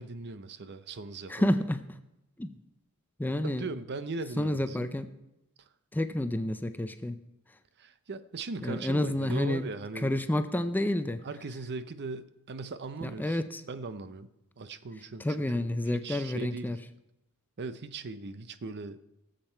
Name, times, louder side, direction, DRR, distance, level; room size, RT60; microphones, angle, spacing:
voice 1, 0.0-1.5 3.4-4.9 7.8-10.1 11.2-13.4 13.7-14.3 14.6-15.3 15.5-16.8 17.6-19.0, right 3 dB, 50° right, 12 dB, 0.6 m, -39 dB
voice 2, 1.3-1.8 2.4-2.5 3.2-3.7 4.4-5.1 5.9-7.1 8.6-9.7 10.0-11.2 13.0-13.6 15.2-16.8, left 1 dB, 10° left, 10 dB, 0.5 m, -29 dB
18.5 x 7.6 x 4.5 m, 0.90 s
head